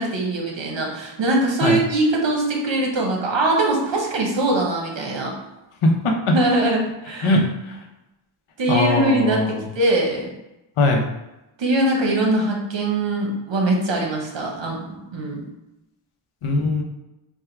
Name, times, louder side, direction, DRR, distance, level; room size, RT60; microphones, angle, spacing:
voice 1, 0.0-5.3 6.3-6.8 7.0-7.3 8.6-10.3 11.6-15.5, right 2 dB, 65° right, -1 dB, 1.0 m, -22 dB
voice 2, 5.8-6.3 7.2-7.8 8.7-9.6 10.8-11.0 16.4-16.8, left 2 dB, 90° left, 1 dB, 0.8 m, -20 dB
3.5 x 2.2 x 4.4 m, 0.94 s
wide cardioid pair, 175°, 48 cm